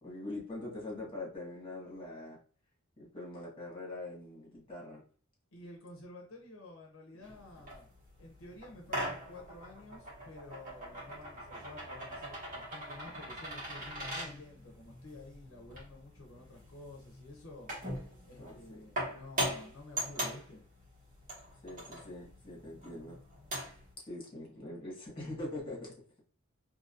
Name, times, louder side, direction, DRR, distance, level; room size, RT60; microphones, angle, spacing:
voice 1, 0.0-2.4 3.0-5.0 18.4-18.6 21.6-23.2 24.1-25.9, left 2 dB, 25° left, -4 dB, 1.8 m, -43 dB
voice 2, 5.5-7.9 8.2-17.7 18.3-20.6, left 2 dB, 70° left, 1 dB, 0.8 m, -51 dB
sound 1, 7.2-23.9, right 1 dB, 40° right, 1.6 m, -42 dB
3.7 x 2.8 x 2.7 m, 0.43 s
head